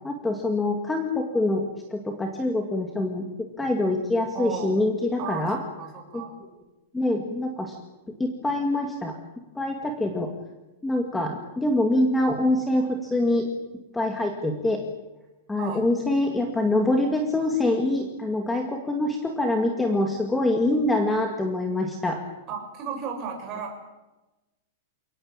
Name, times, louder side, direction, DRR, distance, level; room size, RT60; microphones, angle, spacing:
voice 1, 0.0-1.6 1.9-3.2 3.6-5.6 6.1-6.2 6.9-7.7 8.2-9.1 9.6-10.3 10.8-13.5 13.9-14.8 15.5-22.2, left 1 dB, 5° left, 3 dB, 2.2 m, -25 dB
voice 2, 4.3-4.8 5.2-5.5 5.8-6.3 15.6-15.8 22.5-23.8, right 6 dB, 25° right, 2 dB, 6.9 m, -34 dB
29.5 x 18.5 x 8.9 m, 1.0 s
supercardioid pair, 175°, 0 cm